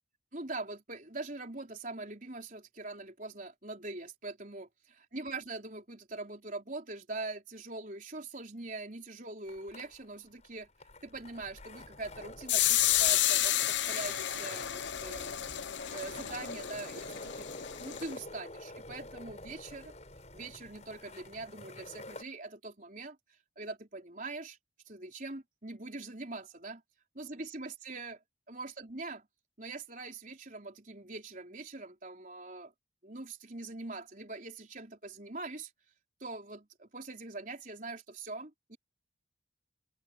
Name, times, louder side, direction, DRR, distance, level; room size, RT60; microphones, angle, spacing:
voice 1, 0.3-10.7 11.0-15.3 15.9-17.5 17.8-19.9 20.3-23.2 23.6-24.6 24.9-26.8 27.2-28.2 28.5-29.3 29.6-32.7 33.0-35.7 36.2-38.8, right 3 dB, 45° right, 4.3 m, -43 dB
sound 1, 9.5-22.2, left 1 dB, 35° left, 6.8 m, -49 dB
sound 2, 12.5-18.1, left 13 dB, 70° left, 0.8 m, -31 dB
open air
head